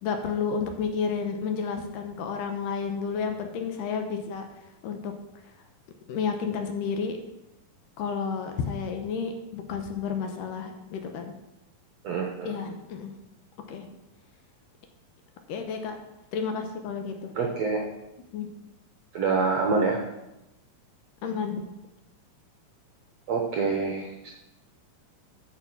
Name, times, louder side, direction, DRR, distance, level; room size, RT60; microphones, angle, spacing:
voice 1, 0.0-4.5 4.8-5.1 6.1-7.2 8.0-11.3 12.4-13.1 13.7-13.9 15.5-16.0 16.3-17.3 18.3-18.5 21.2-21.7, left 6 dB, 75° left, 5 dB, 2.3 m, -31 dB
voice 2, 12.0-12.6 17.3-17.8 19.1-20.1 23.3-24.3, right 4 dB, 75° right, 1 dB, 1.5 m, -26 dB
8.4 x 6.9 x 5.8 m, 0.94 s
omnidirectional pair, 4.2 m